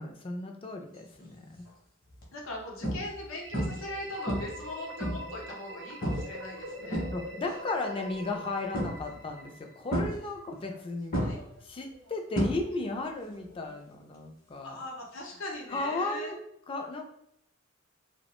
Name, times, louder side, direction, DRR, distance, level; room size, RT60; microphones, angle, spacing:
voice 1, 0.0-1.7 7.1-11.2 11.6-14.8 15.7-16.4 16.7-17.1, left 2 dB, 25° left, 4 dB, 0.3 m, -35 dB
sound 1, 1.2-1.5 2.1-2.2 2.8-3.3 3.5-3.9 4.3-5.4 6.0-6.4 6.7-7.5 8.7-9.3 9.9-10.8 11.1-13.0 13.3-13.7 15.8-15.9, equal, 45° left, 0.7 m, -32 dB
voice 2, 2.3-7.0 11.2-11.4 14.6-16.4, left 1 dB, 90° left, -1 dB, 0.7 m, -40 dB
sound 2, 3.4-10.1, equal, 60° right, 0.4 m, -44 dB
2.3 x 2.1 x 2.9 m, 0.74 s
head